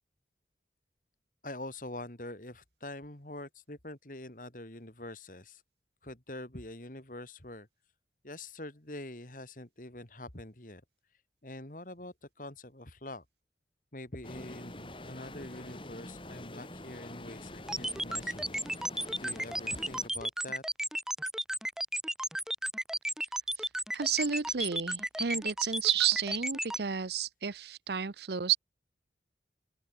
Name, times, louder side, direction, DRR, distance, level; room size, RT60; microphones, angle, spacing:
voice 1, 1.4-5.6 6.0-7.7 8.2-10.8 11.4-13.2 13.9-18.9 19.2-20.6, left 1 dB, 50° left, 2.9 m, -45 dB
sound 1, 14.2-20.1, left 1 dB, 30° left, 3.8 m, -46 dB
sound 2, 17.7-26.8, right 1 dB, 5° right, 0.5 m, -33 dB
voice 2, 23.9-28.6, right 8 dB, 65° right, 0.8 m, -31 dB
open air
head